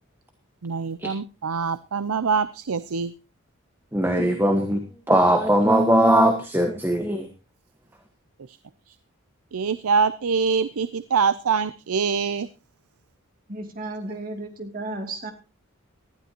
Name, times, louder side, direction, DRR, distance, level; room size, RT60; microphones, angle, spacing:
voice 1, 0.6-3.1 8.5-8.6 8.9-9.0 9.5-12.5, right 5 dB, 80° right, 15 dB, 0.6 m, -24 dB
voice 2, 3.9-7.3, right 1 dB, 10° right, 5 dB, 1.3 m, -20 dB
voice 3, 13.5-15.3, right 2 dB, 40° right, 4 dB, 2.6 m, -33 dB
19.0 x 13.0 x 2.9 m, 0.30 s
head